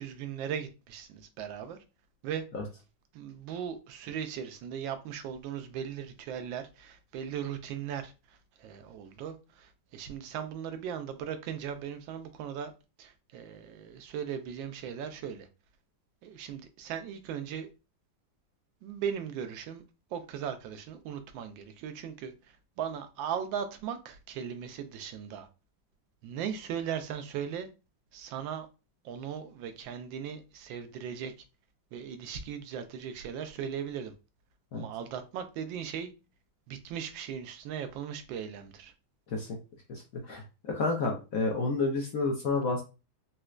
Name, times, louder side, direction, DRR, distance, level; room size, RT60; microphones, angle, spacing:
voice 1, 0.0-1.8 2.2-2.4 3.1-12.7 13.0-15.5 16.2-17.7 18.8-19.8 20.1-25.5 26.2-27.7 28.1-28.7 29.0-31.3 31.9-34.1 34.7-36.1 36.7-38.9, right 8 dB, 80° right, 1.3 m, -38 dB
voice 2, 40.3-42.8, left 3 dB, 65° left, 0.9 m, -30 dB
4.1 x 2.2 x 2.4 m
omnidirectional pair, 2.1 m